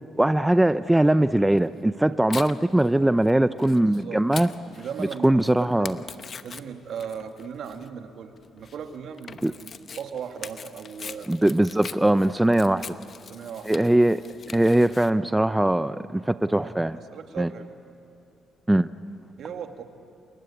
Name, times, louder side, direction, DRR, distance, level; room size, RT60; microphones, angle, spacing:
voice 1, 0.2-4.5 5.2-6.0 9.4-9.5 11.3-12.8 13.6-14.2 14.5-17.0 17.4-17.5 18.7-18.9, right 1 dB, 10° right, 13 dB, 0.5 m, -21 dB
Tearing, 1.6-15.1, left 6 dB, 45° left, 1.0 m, -43 dB
voice 2, 4.7-5.4 6.4-11.3 13.3-13.7 17.1-17.7 19.4-19.8, right 7 dB, 70° right, 6 dB, 2.0 m, -37 dB
28.5 x 21.5 x 8.6 m, 2.6 s
cardioid pair, 90°, 0 cm